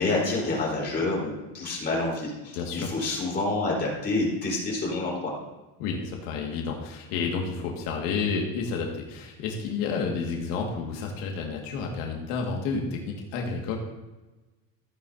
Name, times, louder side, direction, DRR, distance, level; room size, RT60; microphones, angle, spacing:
voice 1, 0.0-5.3, left 2 dB, 25° left, -4 dB, 4.1 m, -28 dB
voice 2, 2.5-2.9 5.8-13.0 13.3-13.8, left 5 dB, 85° left, 0 dB, 2.0 m, -30 dB
15.0 x 9.5 x 2.7 m, 1.1 s
cardioid pair, 160°, 40 cm